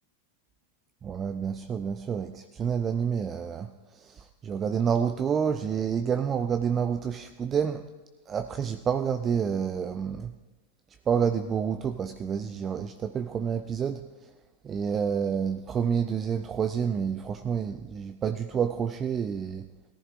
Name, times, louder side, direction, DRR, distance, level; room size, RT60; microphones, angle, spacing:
voice 1, 1.0-7.8 8.3-10.3 11.1-14.3 14.6-19.7, right 7 dB, 25° right, 9 dB, 0.4 m, -29 dB
18.0 x 14.0 x 2.5 m, 1.1 s
figure-of-eight pair, 90°, 0 cm